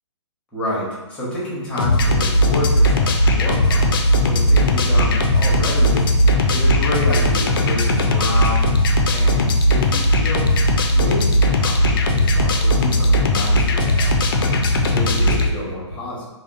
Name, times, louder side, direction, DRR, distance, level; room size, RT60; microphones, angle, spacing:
voice 1, 0.5-6.1 6.5-8.7 9.1-10.5 10.9-14.1 14.9-16.3, left 1 dB, 5° left, -7 dB, 1.0 m, -29 dB
sound 1, 1.8-15.5, left 1 dB, 45° left, 0.4 m, -17 dB
3.4 x 2.0 x 2.5 m, 1.1 s
figure-of-eight pair, 125°, 16 cm